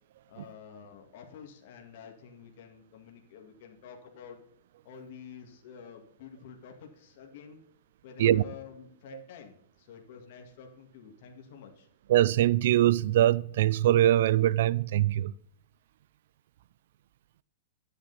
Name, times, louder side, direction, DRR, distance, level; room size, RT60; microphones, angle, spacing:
voice 1, 0.3-4.4 4.8-7.6 8.0-11.9, left 7 dB, 55° left, 1.9 m, -49 dB
voice 2, 12.1-15.3, right 12 dB, 65° right, 0.4 m, -23 dB
10.0 x 8.4 x 4.0 m
hypercardioid pair, 135°, 0 cm